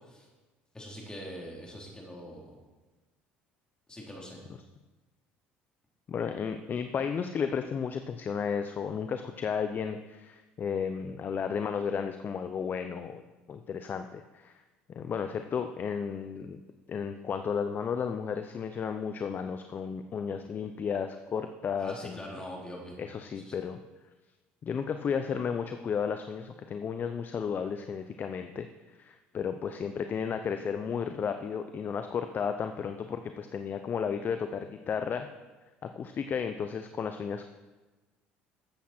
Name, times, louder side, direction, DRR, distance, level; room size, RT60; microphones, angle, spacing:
voice 1, 0.7-2.6 3.9-4.4 21.8-22.9 23.5-23.6, equal, 15° left, -1 dB, 3.5 m, -43 dB
voice 2, 6.1-14.6 14.9-16.6 16.9-22.4 23.0-23.8 24.6-28.7 29.0-35.3 35.8-37.5, left 6 dB, 40° left, 8 dB, 0.7 m, -33 dB
13.0 x 8.3 x 4.4 m, 1.2 s
supercardioid pair, 80°, 5 cm